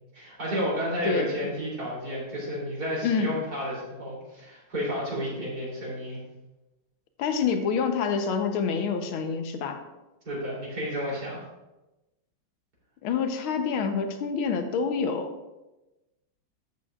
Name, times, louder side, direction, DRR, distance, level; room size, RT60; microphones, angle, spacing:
voice 1, 0.1-6.2 10.3-11.4, equal, 50° right, -6 dB, 3.8 m, -31 dB
voice 2, 3.0-3.3 7.2-9.8 13.0-15.3, left 5 dB, 80° left, 7 dB, 1.7 m, -27 dB
12.0 x 8.2 x 2.4 m, 1.0 s
omnidirectional pair, 2.3 m